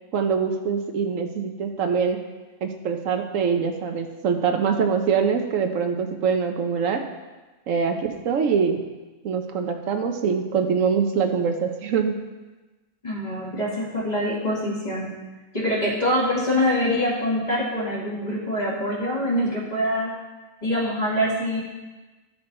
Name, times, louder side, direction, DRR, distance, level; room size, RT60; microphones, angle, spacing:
voice 1, 0.1-2.2 2.6-7.0 7.7-8.8 9.2-12.1, right 6 dB, 75° right, 5 dB, 1.1 m, -24 dB
voice 2, 13.0-15.2 15.5-20.2 20.6-21.6, equal, 30° left, -5 dB, 2.3 m, -24 dB
12.5 x 6.1 x 4.3 m, 1.2 s
omnidirectional pair, 1.4 m